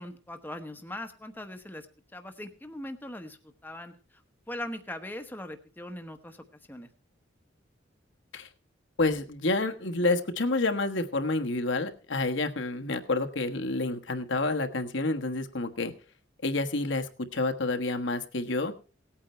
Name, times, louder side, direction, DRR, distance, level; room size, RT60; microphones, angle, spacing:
voice 1, 0.0-1.9 2.1-4.2 4.5-6.9, left 1 dB, 10° left, 6 dB, 1.1 m, -40 dB
voice 2, 9.0-15.9 16.4-18.7, left 2 dB, 70° left, 6 dB, 1.3 m, -29 dB
18.5 x 8.8 x 4.4 m, 0.35 s
head